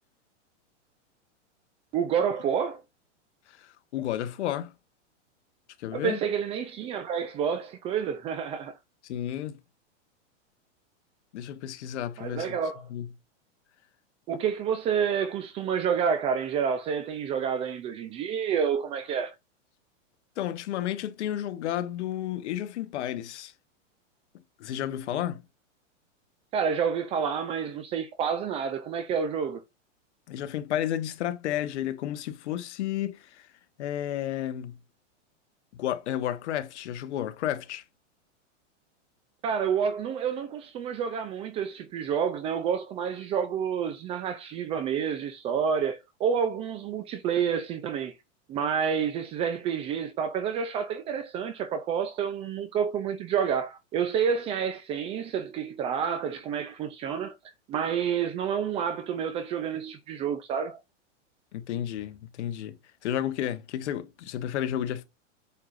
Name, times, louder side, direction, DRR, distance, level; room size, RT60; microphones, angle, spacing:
voice 1, 1.9-2.8 5.9-8.8 12.2-12.8 14.3-19.3 26.5-29.6 39.4-48.1 48.5-57.3 57.7-60.8, right 7 dB, 15° right, 0.4 m, -29 dB
voice 2, 3.5-4.7 5.8-6.2 9.0-9.6 11.3-12.6 12.9-13.1 20.4-23.5 24.6-25.4 30.3-33.5 33.8-34.8 35.7-37.8 61.5-62.7 63.0-65.1, left 11 dB, 65° left, 1.3 m, -32 dB
8.4 x 6.5 x 2.5 m
supercardioid pair, 145°, 37 cm